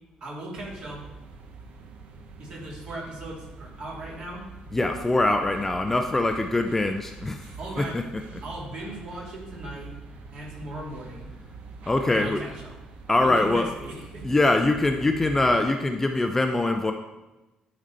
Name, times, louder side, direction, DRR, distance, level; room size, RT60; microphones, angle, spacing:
voice 1, 0.2-1.0 2.4-4.4 7.6-8.0 8.4-9.9 10.3-11.3 12.1-12.8 13.2-14.2, right 1 dB, 45° right, -3 dB, 2.5 m, -38 dB
sound 1, 0.5-15.6, right 4 dB, 65° right, 0.9 m, -45 dB
voice 2, 4.7-7.5 7.8-8.0 11.9-12.4 13.1-13.7 14.2-16.9, left 2 dB, 15° left, 5 dB, 0.4 m, -23 dB
11.5 x 4.0 x 4.3 m, 1.0 s
cardioid pair, 150°, 2 cm